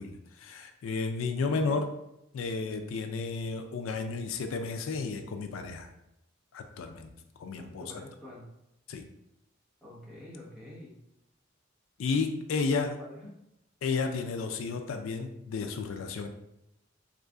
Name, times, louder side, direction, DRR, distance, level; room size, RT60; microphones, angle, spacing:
voice 1, 0.0-1.9 2.3-5.9 6.5-7.1 7.4-8.0 8.9-9.0 12.0-12.9 13.8-16.3, left 4 dB, 80° left, 6 dB, 0.4 m, -32 dB
voice 2, 7.6-8.4 9.8-10.9 13.0-13.3, left 1 dB, ahead, -7 dB, 1.0 m, -47 dB
3.1 x 2.4 x 3.6 m, 0.85 s
head